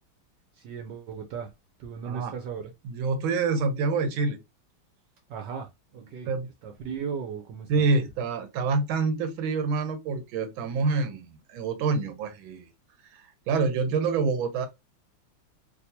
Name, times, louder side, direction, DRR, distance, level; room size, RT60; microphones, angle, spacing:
voice 1, 0.5-1.5 1.8-2.7 5.3-6.3 6.6-7.8, right 6 dB, 70° right, 1.1 m, -36 dB
voice 2, 2.8-4.4 6.2-6.5 7.7-12.7 13.1-14.7, right 4 dB, 90° right, 1.5 m, -27 dB
3.5 x 2.6 x 2.7 m
omnidirectional pair, 2.2 m